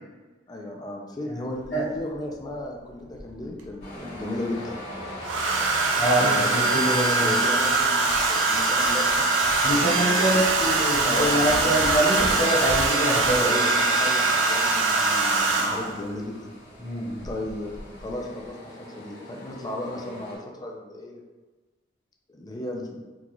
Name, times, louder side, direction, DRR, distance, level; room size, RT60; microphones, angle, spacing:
voice 1, 0.5-4.8 6.1-6.8 7.2-9.3 9.7-10.5 11.0-11.7 13.4-16.5 17.2-17.7 18.0-21.2 22.3-23.0, left 1 dB, 20° left, 0 dB, 0.4 m, -35 dB
voice 2, 1.3-1.9 6.0-7.3 9.6-13.6 16.8-17.3, right 1 dB, 70° left, -9 dB, 1.3 m, -25 dB
Domestic sounds home sounds, 1.6-1.7 3.1-3.8 5.2-16.0 17.2-17.5 17.7-18.1, right 3 dB, 90° right, 0.5 m, -23 dB
sound 1, 3.8-20.4, left 1 dB, 55° left, 1.5 m, -41 dB
3.8 x 2.3 x 3.0 m, 1.3 s
head